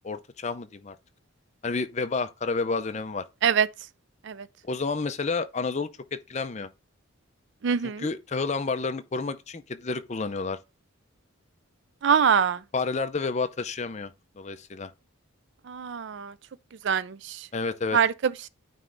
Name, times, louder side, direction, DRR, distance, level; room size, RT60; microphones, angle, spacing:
voice 1, 0.0-1.0 1.6-3.2 4.6-6.7 8.0-10.6 12.7-14.9 17.5-18.0, left 4 dB, 35° left, 0.5 m, -30 dB
voice 2, 7.6-8.1 12.0-12.6 15.6-16.3 16.8-17.5 17.9-18.5, right 7 dB, 55° right, 0.4 m, -24 dB
9.2 x 3.2 x 3.9 m
head